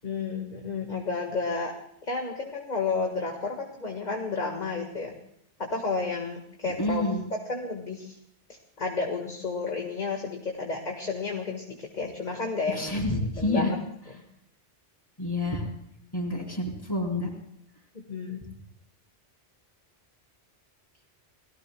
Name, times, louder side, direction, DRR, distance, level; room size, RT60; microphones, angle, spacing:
voice 1, 0.0-1.7 2.0-5.1 5.6-8.2 8.8-13.8 17.9-18.4, left 4 dB, 40° left, 1 dB, 1.8 m, -32 dB
voice 2, 6.8-7.2 12.7-13.7 15.2-15.7 16.1-17.3, left 1 dB, 20° left, -2 dB, 4.2 m, -28 dB
30.0 x 18.5 x 2.3 m, 0.75 s
omnidirectional pair, 1.2 m